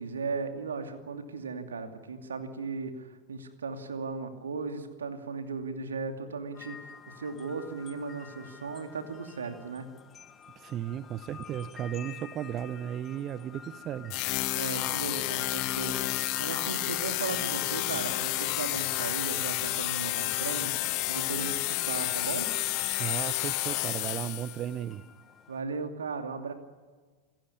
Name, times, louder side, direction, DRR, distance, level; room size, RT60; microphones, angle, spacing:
voice 1, 0.0-9.9 14.6-22.5 25.5-26.5, right 4 dB, 70° right, 6 dB, 2.6 m, -37 dB
sound 1, 6.5-25.6, left 6 dB, 25° left, 1.4 m, -49 dB
voice 2, 10.6-14.2 23.0-25.0, right 10 dB, 30° right, 16 dB, 0.8 m, -35 dB
sound 2, 14.1-24.7, left 18 dB, 45° left, 1.2 m, -30 dB
28.0 x 15.5 x 9.8 m, 1.4 s
figure-of-eight pair, 90°, 0 cm